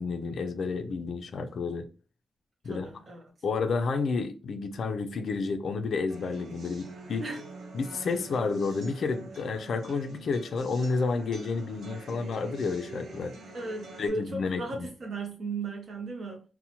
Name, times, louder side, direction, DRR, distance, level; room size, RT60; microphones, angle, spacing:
voice 1, 0.0-1.9 2.6-2.9 3.4-7.3 7.7-13.4 14.0-14.9, left 4 dB, 60° left, 0.3 m, -30 dB
voice 2, 2.6-3.2 7.2-7.4 13.5-16.4, right 3 dB, 45° right, 0.6 m, -36 dB
sound 1, 6.1-14.1, right 3 dB, 85° right, 0.7 m, -46 dB
2.7 x 2.0 x 2.8 m
wide cardioid pair, 155°, 0 cm